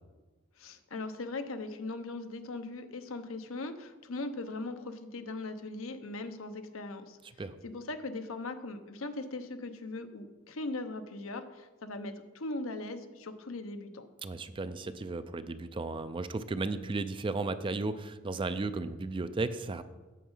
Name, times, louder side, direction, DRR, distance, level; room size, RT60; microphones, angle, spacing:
voice 1, 0.6-14.0, left 2 dB, 80° left, 8 dB, 0.8 m, -39 dB
voice 2, 14.2-19.8, right 3 dB, 25° right, 12 dB, 0.4 m, -34 dB
8.4 x 7.2 x 5.5 m, 1.2 s
head